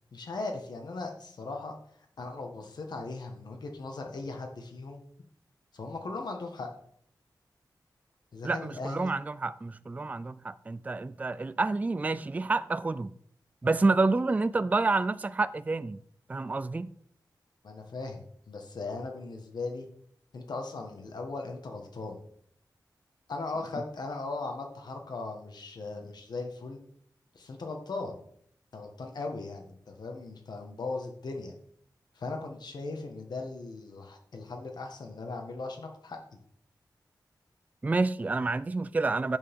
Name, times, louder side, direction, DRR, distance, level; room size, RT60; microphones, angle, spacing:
voice 1, 0.1-1.8 2.2-5.0 5.7-6.7 8.3-9.1 17.6-19.8 20.3-22.2 23.3-26.8 27.3-28.1 28.7-31.5 32.1-36.2, left 3 dB, 70° left, 1.6 m, -38 dB
voice 2, 8.4-13.1 13.6-16.0 16.3-16.9 37.8-39.4, right 3 dB, 20° right, 0.3 m, -28 dB
10.5 x 8.8 x 3.7 m
wide cardioid pair, 145°, 7 cm